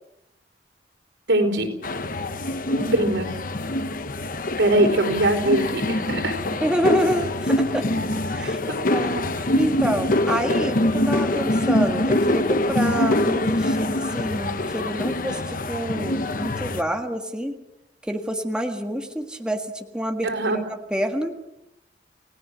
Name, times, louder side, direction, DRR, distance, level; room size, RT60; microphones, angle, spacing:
voice 1, 1.3-1.7 2.7-3.3 4.6-6.3 8.7-8.8 20.2-20.6, right 1 dB, 90° right, 4 dB, 4.5 m, -21 dB
sound 1, 1.8-16.8, left 1 dB, 50° left, 1.1 m, -24 dB
voice 2, 4.8-5.2 6.5-7.8 8.3-8.6 8.9-17.6 18.0-21.4, equal, 5° right, 4 dB, 1.7 m, -28 dB
30.0 x 17.5 x 6.4 m, 0.87 s
head